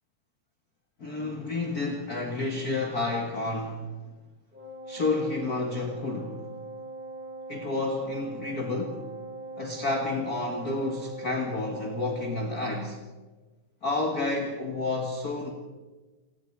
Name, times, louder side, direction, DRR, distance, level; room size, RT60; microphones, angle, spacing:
voice 1, 1.0-3.9 4.9-6.5 7.5-9.0 9.6-13.0 13.8-15.5, left 2 dB, 35° left, 3 dB, 2.0 m, -30 dB
Wind instrument woodwind instrument, 4.5-12.7, right 2 dB, 15° right, 6.1 m, -41 dB
28.5 x 20.5 x 4.8 m, 1.3 s
omnidirectional pair, 3.6 m